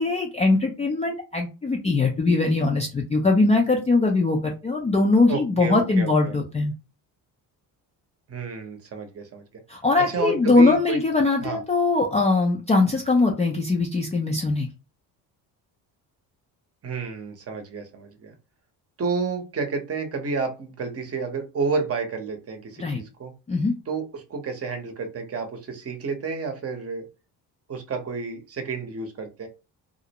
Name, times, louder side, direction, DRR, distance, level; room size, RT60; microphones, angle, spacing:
voice 1, 0.0-6.7 9.7-14.7 22.8-23.0 23.5-23.7, left 3 dB, 15° left, 0 dB, 0.4 m, -21 dB
voice 2, 5.3-6.4 8.3-9.4 10.1-11.0 11.4-11.6 16.8-18.3 19.0-23.3 23.9-27.0 27.7-29.5, right 4 dB, 35° right, 6 dB, 0.8 m, -30 dB
2.5 x 2.0 x 2.8 m, 0.31 s
cardioid pair, 90°, 40 cm